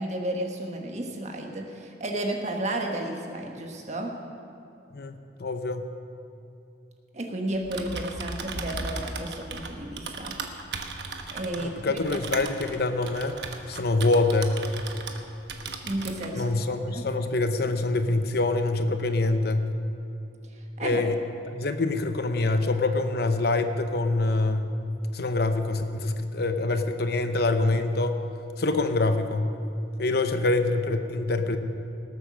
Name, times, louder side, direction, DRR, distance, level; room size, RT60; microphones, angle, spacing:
voice 1, 0.0-4.1 7.1-10.4 11.3-12.2 15.8-17.0 20.8-21.1, right 1 dB, 40° right, 2 dB, 1.4 m, -32 dB
voice 2, 5.4-5.9 11.5-13.4 13.7-14.6 16.3-19.7 20.8-21.2 21.5-24.7 25.1-28.2 28.6-29.5 30.0-31.6, left 2 dB, 60° left, 8 dB, 0.8 m, -25 dB
Typing, 7.5-15.2 15.5-16.3, right 4 dB, 70° right, 1.1 m, -36 dB
19.0 x 8.4 x 6.4 m, 2.8 s
head